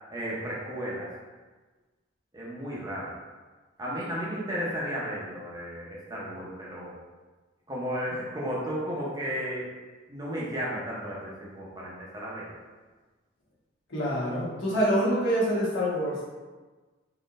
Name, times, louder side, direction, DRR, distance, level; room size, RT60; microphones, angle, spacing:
voice 1, 0.1-1.1 2.3-3.1 3.8-7.0 7.7-9.7 10.1-12.5, equal, 20° right, -6 dB, 0.7 m, -34 dB
voice 2, 13.9-16.3, equal, 70° left, -7 dB, 1.2 m, -26 dB
3.9 x 3.0 x 2.5 m, 1.3 s
head